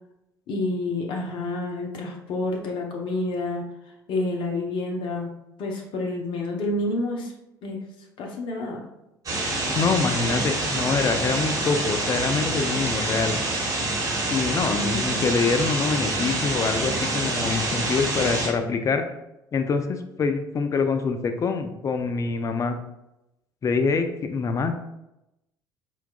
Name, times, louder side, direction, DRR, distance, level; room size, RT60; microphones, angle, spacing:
voice 1, 0.5-3.6 4.1-5.3 5.6-7.3 7.6-7.8 8.2-8.8 14.7-15.3, left 2 dB, 50° left, 0 dB, 0.8 m, -29 dB
sound 1, 9.3-18.5, right 2 dB, 30° right, 1.1 m, -26 dB
voice 2, 9.7-13.4 14.3-19.0 19.5-22.8 23.6-24.8, left 4 dB, 30° left, 7 dB, 0.4 m, -25 dB
4.4 x 2.3 x 2.3 m, 0.89 s
figure-of-eight pair, 55°, 11 cm